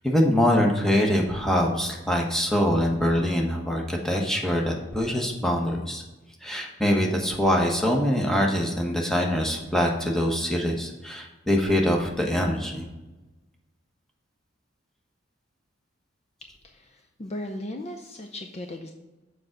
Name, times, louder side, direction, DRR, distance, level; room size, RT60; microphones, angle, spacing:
voice 1, 0.0-6.0 6.4-12.9, equal, ahead, 0 dB, 1.1 m, -24 dB
voice 2, 16.4-18.9, left 1 dB, 35° left, 3 dB, 0.6 m, -37 dB
6.9 x 4.9 x 6.5 m, 1.1 s
head